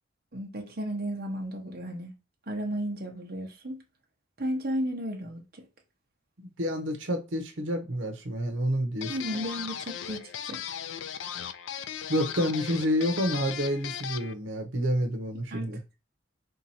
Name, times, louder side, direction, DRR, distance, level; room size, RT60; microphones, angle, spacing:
voice 1, 0.3-2.1 2.5-3.8 4.4-5.6 9.1-10.6 15.5-15.7, equal, 50° right, 0.9 m, -34 dB
voice 2, 6.4-9.1 12.1-15.8, equal, 90° right, 0.9 m, -29 dB
sound 1, 9.0-14.3, left 9 dB, 80° left, 0.4 m, -37 dB
3.7 x 2.9 x 4.2 m
head